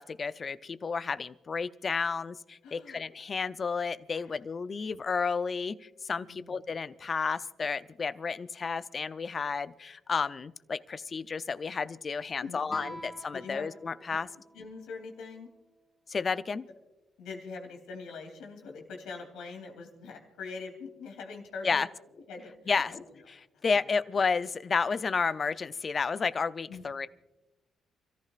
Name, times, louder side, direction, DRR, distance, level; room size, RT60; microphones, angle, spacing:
voice 1, 0.0-14.3 16.1-16.6 21.6-21.9 22.7-22.9 23.6-27.1, left 5 dB, 40° left, 13 dB, 0.6 m, -31 dB
voice 2, 2.6-3.0 4.2-4.3 6.3-6.6 12.4-13.7 14.1-14.2 14.5-15.5 17.2-21.9 22.3-23.0 26.7-26.8, left 4 dB, 85° left, 3 dB, 3.1 m, -43 dB
Guitar, 12.7-15.9, equal, 15° left, 2.1 m, -48 dB
29.5 x 14.0 x 2.5 m, 1.0 s
cardioid pair, 90°, 0 cm